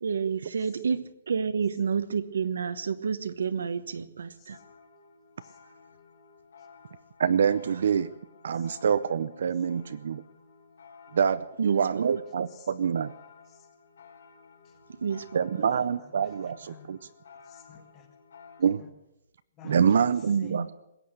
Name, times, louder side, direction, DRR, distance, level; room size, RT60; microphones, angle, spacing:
voice 1, 0.0-4.6 11.6-12.0 15.0-15.6 20.3-20.6, right 6 dB, 80° right, 11 dB, 1.2 m, -29 dB
sound 1, 4.5-18.6, left 5 dB, 70° left, 4.6 m, -54 dB
voice 2, 7.2-8.1 8.4-10.2 11.1-13.1 15.3-17.0 18.6-18.8 19.6-20.7, right 7 dB, 60° right, 13 dB, 0.6 m, -26 dB
voice 3, 15.6-16.9 17.4-18.1 18.8-18.9 19.5-20.7, left 7 dB, 15° left, 5 dB, 1.8 m, -53 dB
21.0 x 8.6 x 7.8 m, 0.86 s
hypercardioid pair, 175°, 0 cm